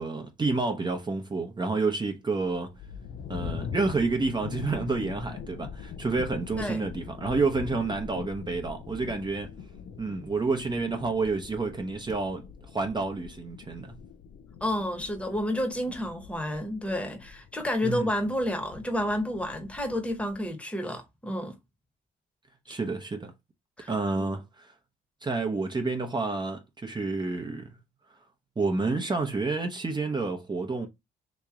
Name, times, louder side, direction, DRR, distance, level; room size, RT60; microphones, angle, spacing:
voice 1, 0.0-2.7 3.3-9.5 10.0-12.4 12.7-13.9 17.8-18.1 22.7-23.3 23.9-24.7 25.2-27.8 28.6-30.9, right 3 dB, 20° right, 0.8 m, -29 dB
sound 1, 2.5-20.5, left 7 dB, 60° left, 0.5 m, -42 dB
voice 2, 6.6-6.9 14.6-21.6 23.8-23.9 24.2-24.3, left 1 dB, 5° left, 1.2 m, -30 dB
3.0 x 2.8 x 3.5 m
cardioid pair, 90°, 20 cm